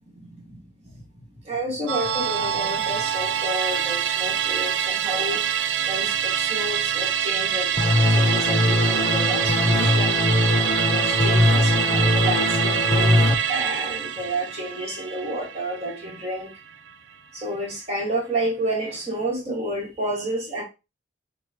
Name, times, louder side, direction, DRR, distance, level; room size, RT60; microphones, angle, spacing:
voice 1, 0.1-5.5 5.9-10.3 10.9-16.5 17.3-20.6, right 1 dB, 35° right, 1.9 m, -30 dB
Musical instrument, 1.9-16.6 16.9-17.0, right 9 dB, 70° right, 0.3 m, -25 dB
sound 1, 7.8-13.3, left 1 dB, 20° left, 0.5 m, -21 dB
6.7 x 2.4 x 2.9 m
head